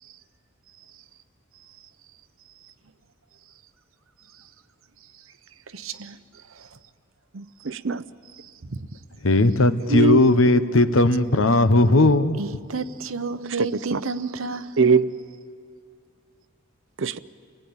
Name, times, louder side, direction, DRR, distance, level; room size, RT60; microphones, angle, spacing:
voice 1, 5.7-6.2 12.4-14.7, right 4 dB, 85° right, 1.0 m, -31 dB
voice 2, 7.3-8.0 9.9-10.2 13.6-14.0 14.8-15.1 17.0-17.2, right 4 dB, 65° right, 0.6 m, -22 dB
voice 3, 9.2-12.4, left 2 dB, 75° left, 1.0 m, -17 dB
29.5 x 19.0 x 8.8 m
head